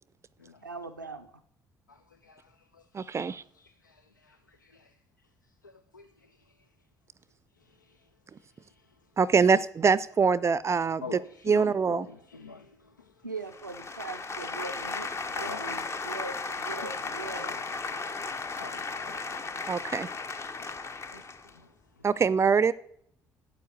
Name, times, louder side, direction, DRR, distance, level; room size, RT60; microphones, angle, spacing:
voice 1, 0.6-1.3 13.2-17.5, right 4 dB, 90° right, 8 dB, 0.4 m, -41 dB
voice 2, 2.9-3.4 9.2-11.2 11.4-12.1 19.7-20.1 22.0-22.7, right 5 dB, 30° right, 19 dB, 0.4 m, -24 dB
voice 3, 11.0-12.0 12.3-12.7 15.4-15.6 18.6-19.1, left 4 dB, 85° left, 10 dB, 0.4 m, -42 dB
sound 1, 13.5-21.5, left 4 dB, 30° left, 0.7 m, -35 dB
9.2 x 8.0 x 8.3 m, 0.69 s
figure-of-eight pair, 50°, 10 cm